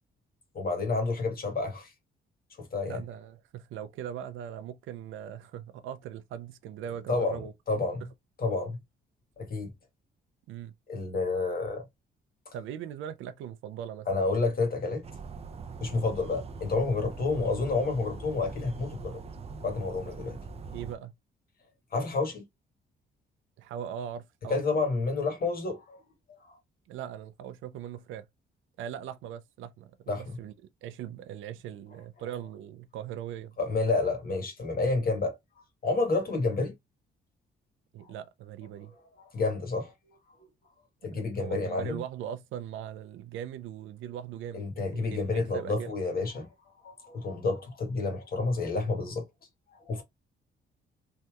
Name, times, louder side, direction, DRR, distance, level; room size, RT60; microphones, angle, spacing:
voice 1, 0.5-1.9 2.7-3.0 7.1-7.4 7.7-8.0 8.4-8.8 9.4-9.7 10.9-11.8 14.1-15.0 15.8-19.2 19.6-20.4 21.9-22.5 24.5-26.0 26.4-26.5 30.1-30.2 33.6-35.4 35.8-36.7 38.1-38.2 39.3-39.9 41.0-42.0 44.5-46.5 46.8-49.2 49.8-50.0, left 3 dB, 50° left, 1.3 m, -29 dB
voice 2, 2.9-7.5 10.5-10.7 12.5-14.1 20.7-21.1 23.6-24.6 26.9-28.3 28.8-30.5 30.8-33.6 37.9-38.9 41.1-45.9, right 9 dB, 85° right, 0.5 m, -40 dB
sound 1, 15.0-21.0, right 4 dB, 30° right, 0.5 m, -42 dB
3.2 x 2.7 x 2.3 m
cardioid pair, 90°, 20 cm